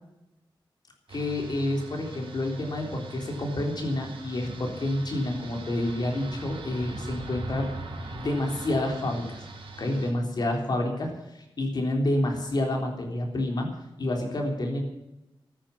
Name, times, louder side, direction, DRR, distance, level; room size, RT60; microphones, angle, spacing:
voice 1, 1.1-7.7 8.2-9.4 9.8-11.1 11.6-13.7 14.0-14.8, left 1 dB, 50° left, 2 dB, 3.6 m, -28 dB
sound 1, 1.1-10.1, right 2 dB, 85° right, 3.7 m, -41 dB
14.0 x 10.0 x 8.5 m, 0.90 s
wide cardioid pair, 170°, 9 cm